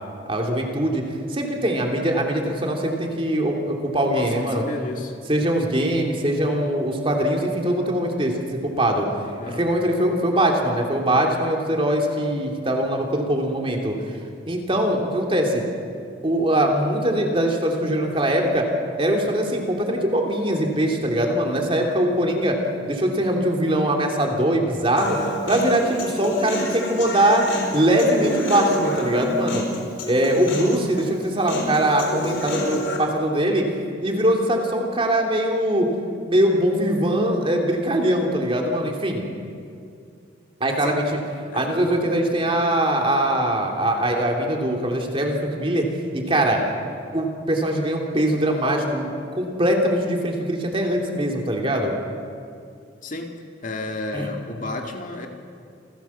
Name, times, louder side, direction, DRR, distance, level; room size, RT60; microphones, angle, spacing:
voice 1, 0.3-1.0 1.3-4.6 5.3-9.1 9.5-13.9 14.5-15.6 16.2-18.7 19.0-22.6 22.9-25.2 25.5-27.4 27.7-29.6 30.1-33.6 34.0-35.9 36.3-39.2 40.6-41.0 41.5-45.9 46.1-46.6 47.1-52.0 54.1-54.3, right 1 dB, 30° right, 1 dB, 2.9 m, -22 dB
voice 2, 4.1-5.1 9.4-9.7 40.8-41.1 41.5-41.8 53.0-53.3 53.6-55.3, left 2 dB, 45° left, 3 dB, 2.1 m, -32 dB
Human voice, 25.0-33.0, left 1 dB, 80° left, 4.2 m, -29 dB
28.5 x 16.5 x 7.2 m, 2.4 s
head